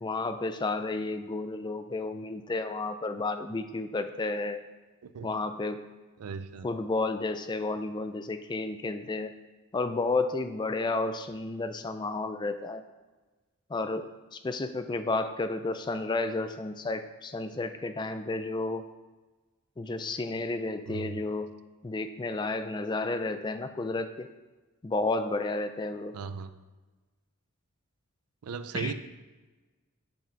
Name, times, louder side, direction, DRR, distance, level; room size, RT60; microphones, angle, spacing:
voice 1, 0.0-4.6 5.2-5.8 6.6-9.3 9.7-12.8 13.7-18.8 19.8-21.5 21.8-24.3 24.8-26.1 28.7-28.9, left 3 dB, 20° left, 9 dB, 0.3 m, -32 dB
voice 2, 6.2-6.7 20.9-21.2 26.1-26.5 28.4-28.9, right 5 dB, 90° right, 12 dB, 0.4 m, -37 dB
7.3 x 5.7 x 4.5 m, 1.2 s
head